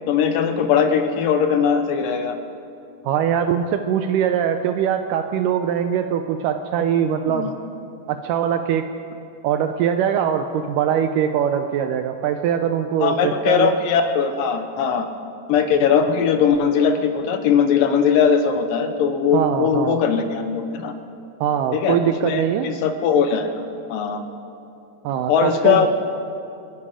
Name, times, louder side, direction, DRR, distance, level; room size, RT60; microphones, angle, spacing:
voice 1, 0.1-2.4 7.3-7.5 13.0-15.1 15.5-20.9 21.7-23.5 23.9-24.2 25.3-25.9, left 7 dB, 75° left, 7 dB, 2.4 m, -20 dB
voice 2, 3.0-7.5 8.1-8.8 9.4-13.7 19.3-20.0 21.4-22.7 25.0-25.9, right 9 dB, 80° right, 7 dB, 1.9 m, -22 dB
29.0 x 10.0 x 5.0 m, 2.7 s
omnidirectional pair, 4.3 m